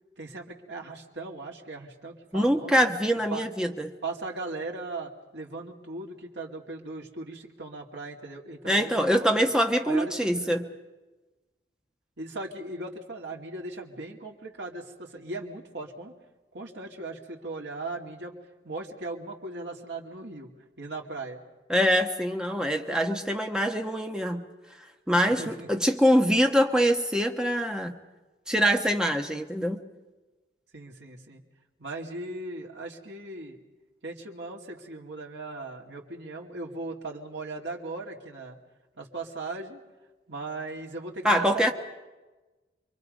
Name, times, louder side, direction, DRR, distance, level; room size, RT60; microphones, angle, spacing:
voice 1, 0.2-2.7 3.3-3.5 4.0-9.5 9.9-10.5 12.2-16.1 16.5-18.4 18.6-20.5 20.8-21.4 25.2-25.7 30.7-31.4 31.8-33.6 34.0-38.6 39.0-39.8 40.3-41.7, right 2 dB, 85° right, 0 dB, 2.4 m, -38 dB
voice 2, 2.3-3.9 8.6-10.7 21.7-24.4 25.1-28.0 28.5-29.8 41.2-41.7, equal, 5° right, 4 dB, 1.1 m, -24 dB
28.0 x 23.0 x 5.3 m, 1.2 s
head